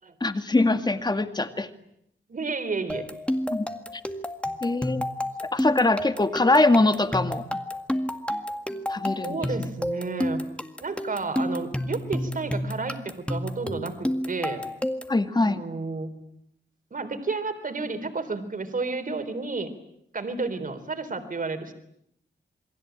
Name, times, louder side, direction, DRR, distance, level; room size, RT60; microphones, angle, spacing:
voice 1, 0.2-1.7 3.5-3.7 4.6-5.1 5.5-7.4 8.9-9.7 15.1-15.6, left 2 dB, 20° left, 8 dB, 2.1 m, -23 dB
voice 2, 2.3-3.0 9.2-10.4 10.8-14.6 15.4-16.2 16.9-19.7 20.1-21.7, right 3 dB, 45° right, 9 dB, 3.9 m, -31 dB
sound 1, 2.9-15.2, left 1 dB, 5° left, 1.9 m, -30 dB
28.0 x 23.0 x 9.0 m, 0.75 s
wide cardioid pair, 120°, 19 cm